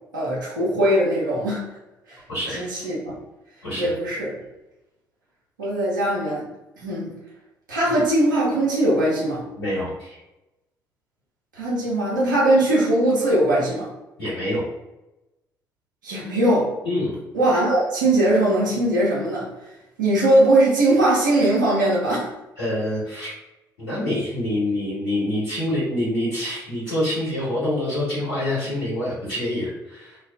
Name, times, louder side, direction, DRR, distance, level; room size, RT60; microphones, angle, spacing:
voice 1, 0.1-1.8 2.1-2.2 2.5-3.1 3.8-4.3 5.6-6.5 6.8-7.1 7.7-9.5 11.5-13.9 16.0-16.7 17.3-19.7 20.0-22.3, right 1 dB, 85° right, -7 dB, 0.6 m, -20 dB
voice 2, 2.3-2.6 3.6-3.9 9.6-10.2 14.2-14.6 16.8-17.1 22.6-23.3 23.8-30.2, left 1 dB, 80° left, -10 dB, 1.2 m, -26 dB
2.3 x 2.2 x 2.3 m, 0.97 s
figure-of-eight pair, 45°, 10 cm